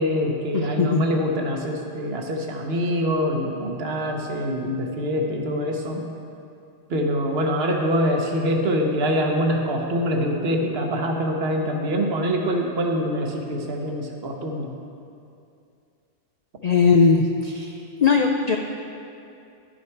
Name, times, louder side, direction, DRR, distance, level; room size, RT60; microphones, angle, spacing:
voice 1, 0.0-6.0 6.9-14.7, equal, 60° right, 2 dB, 1.1 m, -24 dB
voice 2, 0.5-1.1 16.6-17.7 18.0-18.6, left 5 dB, 65° left, 3 dB, 0.4 m, -19 dB
11.0 x 6.4 x 4.5 m, 2.6 s
omnidirectional pair, 1.2 m